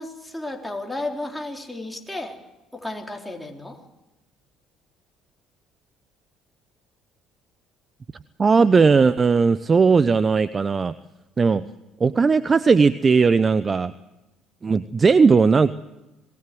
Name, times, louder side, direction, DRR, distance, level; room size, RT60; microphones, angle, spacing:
voice 1, 0.0-2.4 2.7-3.8, left 2 dB, 5° left, 1 dB, 3.9 m, -33 dB
voice 2, 8.4-10.9 11.4-11.6 12.0-13.9 14.6-15.7, right 5 dB, 35° right, 15 dB, 0.8 m, -17 dB
26.5 x 19.0 x 7.8 m, 1.0 s
hypercardioid pair, 70°, 0 cm